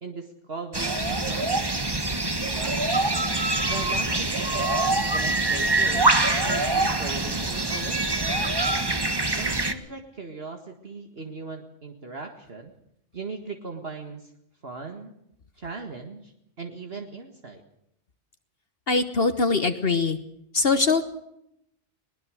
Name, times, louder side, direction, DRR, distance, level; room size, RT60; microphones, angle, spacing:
voice 1, 0.0-1.9 2.5-2.8 3.7-6.1 6.4-8.2 9.4-12.7 13.1-14.3 14.6-15.1 15.6-17.6, right 4 dB, 60° right, 4 dB, 2.1 m, -38 dB
sound 1, 0.7-9.7, right 2 dB, 20° right, 1.4 m, -24 dB
voice 2, 18.9-20.2 20.5-21.0, left 4 dB, 55° left, 9 dB, 1.4 m, -22 dB
21.0 x 20.5 x 6.4 m, 0.76 s
omnidirectional pair, 1.2 m